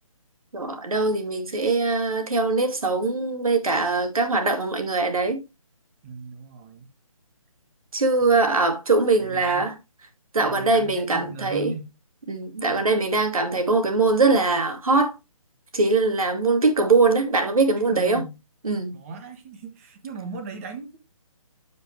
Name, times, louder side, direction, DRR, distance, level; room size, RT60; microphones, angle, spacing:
voice 1, 0.5-5.4 7.9-9.7 10.3-11.7 12.3-15.1 15.7-18.3 18.6-18.9, right 3 dB, 80° right, 2.5 m, -22 dB
voice 2, 6.0-6.9 8.2-8.4 9.2-9.7 10.4-11.9 17.8-18.4 18.9-21.0, right 3 dB, 25° right, 1.3 m, -38 dB
10.0 x 5.6 x 3.2 m
hypercardioid pair, 160°, 18 cm